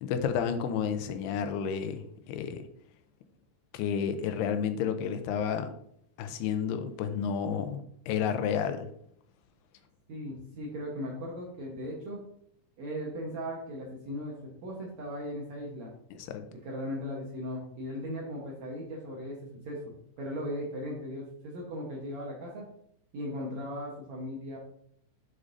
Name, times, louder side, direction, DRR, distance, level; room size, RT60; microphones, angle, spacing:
voice 1, 0.0-2.6 3.7-5.7 6.2-8.9 16.2-16.5, left 7 dB, 90° left, 9 dB, 2.7 m, -31 dB
voice 2, 10.1-12.2 12.8-15.9 16.6-22.7 23.1-24.6, equal, 65° right, -3 dB, 1.8 m, -38 dB
7.6 x 6.4 x 2.6 m, 0.69 s
omnidirectional pair, 4.6 m